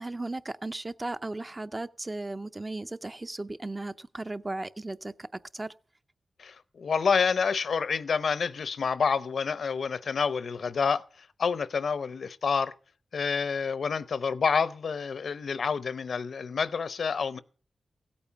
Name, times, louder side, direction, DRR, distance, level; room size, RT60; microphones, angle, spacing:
voice 1, 0.0-5.7, right 2 dB, 25° right, 0.6 m, -36 dB
voice 2, 6.4-11.0 11.4-12.7 13.1-17.4, left 5 dB, 75° left, 0.7 m, -28 dB
16.0 x 8.6 x 5.8 m
wide cardioid pair, 105°, 0 cm